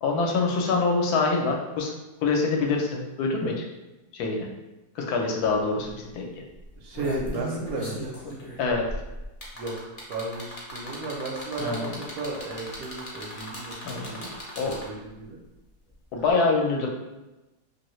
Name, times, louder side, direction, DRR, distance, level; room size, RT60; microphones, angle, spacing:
voice 1, 0.0-1.9 2.2-3.6 4.1-4.5 5.0-6.3 8.6-8.8 11.6-11.9 13.8-14.8 16.1-16.9, left 4 dB, 75° left, 0 dB, 1.1 m, -25 dB
sound 1, 5.4-5.5 5.8-6.1 6.6-15.1 16.3-16.4, equal, 45° left, 0.5 m, -37 dB
voice 2, 6.8-8.0 9.5-9.7 10.1-14.3 14.6-15.4, right 2 dB, 70° right, -1 dB, 1.1 m, -34 dB
2.8 x 2.7 x 3.0 m, 1.0 s
omnidirectional pair, 1.7 m